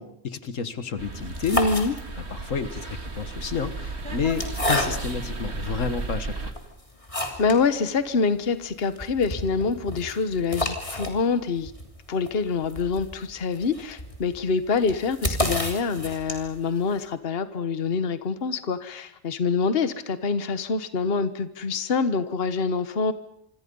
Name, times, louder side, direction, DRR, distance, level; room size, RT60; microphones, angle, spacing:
voice 1, 0.0-1.6 2.3-4.4 4.7-6.5, left 6 dB, 80° left, 11 dB, 1.8 m, -30 dB
sound 1, 1.0-6.5, right 3 dB, 55° right, 2.4 m, -34 dB
sound 2, 1.2-2.4 3.3-5.3 5.9-6.0 6.5-7.7 8.0-8.1 8.3-8.4 8.8-16.7, left 1 dB, 25° left, 3.2 m, -31 dB
voice 2, 1.5-1.9 7.4-11.7 12.1-23.1, left 4 dB, 50° left, 11 dB, 1.4 m, -25 dB
27.0 x 24.5 x 5.4 m, 0.74 s
omnidirectional pair, 1.3 m